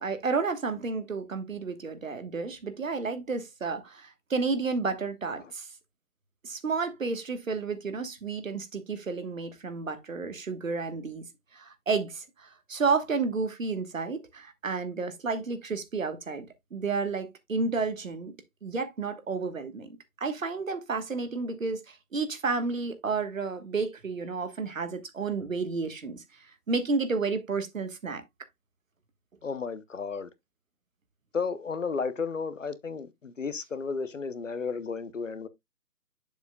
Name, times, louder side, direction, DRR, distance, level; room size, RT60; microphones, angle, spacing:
voice 1, 0.0-5.7 6.4-11.2 11.5-18.3 18.6-26.2 26.7-28.2, right 4 dB, 60° right, 1.4 m, -31 dB
voice 2, 29.4-30.3 31.3-35.5, left 5 dB, 55° left, 0.9 m, -33 dB
7.9 x 7.1 x 2.2 m
hypercardioid pair, 175°, 46 cm